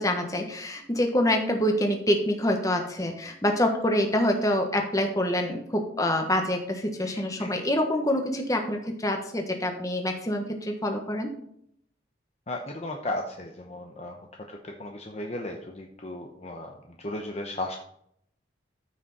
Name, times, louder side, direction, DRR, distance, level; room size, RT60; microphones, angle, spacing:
voice 1, 0.0-11.3, left 1 dB, 20° left, 4 dB, 1.4 m, -26 dB
voice 2, 7.0-7.6 12.5-17.8, left 1 dB, 35° left, 2 dB, 0.9 m, -36 dB
14.0 x 6.2 x 4.2 m, 0.72 s
head